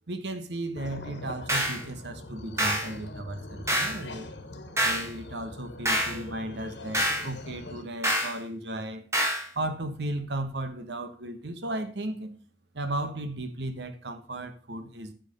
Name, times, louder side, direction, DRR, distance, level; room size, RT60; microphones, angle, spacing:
voice 1, 0.1-4.3 4.8-9.0 9.5-12.3 12.7-15.1, right 1 dB, 75° right, 1.1 m, -35 dB
sound 1, 0.8-7.8, left 2 dB, 85° left, 1.3 m, -43 dB
sound 2, 1.5-1.8 2.6-2.9 3.7-4.0 4.8-5.1 5.8-6.2 6.9-7.3 8.0-8.3 9.1-9.4, equal, 15° right, 1.7 m, -26 dB
8.3 x 6.4 x 5.2 m
head